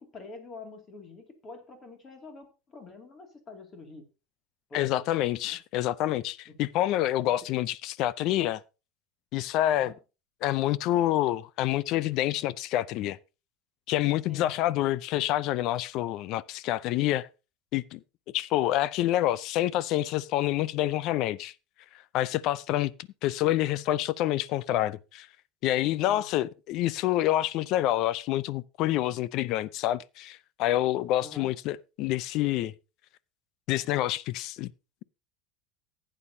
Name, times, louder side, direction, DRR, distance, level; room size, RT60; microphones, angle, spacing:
voice 1, 0.0-4.0 4.7-5.0 5.4-5.6 6.5-6.6 9.7-9.9 14.3-14.5 26.1-26.3 31.2-31.6, left 3 dB, 20° left, 2.3 m, -46 dB
voice 2, 4.7-8.6 9.3-9.9 10.4-13.2 13.9-17.3 17.7-18.0 18.3-21.5 22.1-22.9 23.2-25.3 25.6-32.7 33.7-34.7, left 14 dB, 45° left, 0.5 m, -27 dB
15.5 x 8.9 x 2.7 m
cardioid pair, 165°, 0 cm